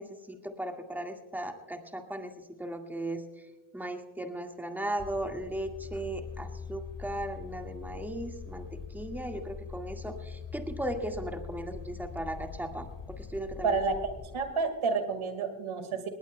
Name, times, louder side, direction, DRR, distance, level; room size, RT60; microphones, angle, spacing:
voice 1, 0.0-2.3 2.6-3.2 3.7-13.8, right 1 dB, 5° right, 3 dB, 1.9 m, -37 dB
sound 1, 5.0-14.4, left 6 dB, 40° left, 2.1 m, -43 dB
voice 2, 13.6-14.0 14.3-16.1, right 4 dB, 80° right, 8 dB, 2.1 m, -29 dB
19.5 x 18.5 x 2.3 m, 1.1 s
cardioid pair, 70°, 49 cm